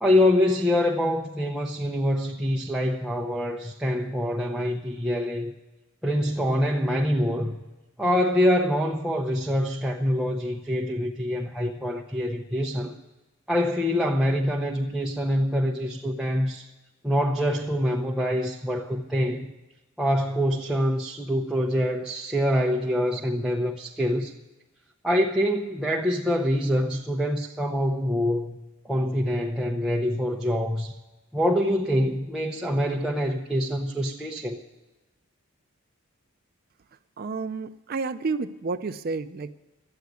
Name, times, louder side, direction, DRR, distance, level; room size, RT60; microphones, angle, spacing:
voice 1, 0.0-5.5 6.0-7.6 8.0-12.9 13.5-16.7 17.0-19.5 20.0-24.3 25.0-28.6 28.8-31.0 31.3-34.6, equal, 5° right, 0.7 m, -25 dB
voice 2, 37.2-39.5, right 4 dB, 45° right, 0.4 m, -30 dB
13.0 x 9.3 x 9.4 m
head